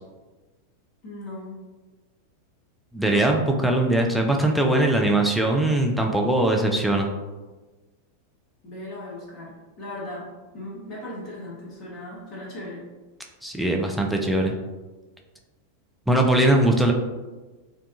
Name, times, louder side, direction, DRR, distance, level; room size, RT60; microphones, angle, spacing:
voice 1, 1.0-1.6 8.6-12.8, left 1 dB, 35° left, -5 dB, 1.0 m, -38 dB
voice 2, 2.9-7.1 13.4-14.5 16.1-16.9, right 1 dB, ahead, 1 dB, 0.3 m, -21 dB
2.6 x 2.2 x 2.5 m, 1.2 s
figure-of-eight pair, 90°, 0 cm